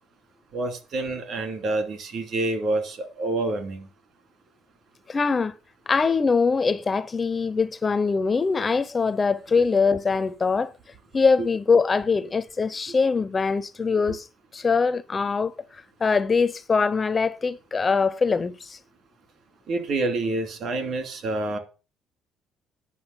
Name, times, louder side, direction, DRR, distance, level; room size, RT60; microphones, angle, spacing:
voice 1, 0.5-3.9 19.7-21.6, right 2 dB, 50° right, 2.5 m, -27 dB
voice 2, 5.1-5.5 5.9-10.7 11.1-14.3 14.5-15.5 16.0-18.8, left 4 dB, 20° left, 0.5 m, -23 dB
9.7 x 6.2 x 8.4 m
cardioid pair, 160°, 0 cm